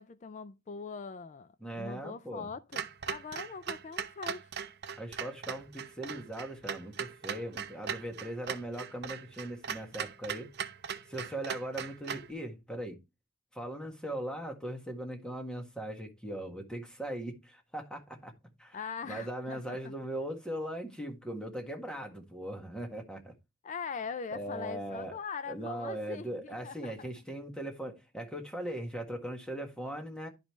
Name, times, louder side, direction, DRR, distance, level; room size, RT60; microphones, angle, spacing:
voice 1, 0.0-4.5 18.7-19.9 23.6-27.1, left 5 dB, 35° left, 0.4 m, -42 dB
voice 2, 1.6-2.5 5.0-10.5 11.1-13.0 13.5-18.3 18.6-18.8 19.1-23.3 24.3-25.1 25.5-30.3, right 1 dB, 5° left, 1.6 m, -39 dB
Clock, 2.7-12.3, right 7 dB, 50° right, 0.6 m, -39 dB
11.0 x 5.2 x 3.1 m
head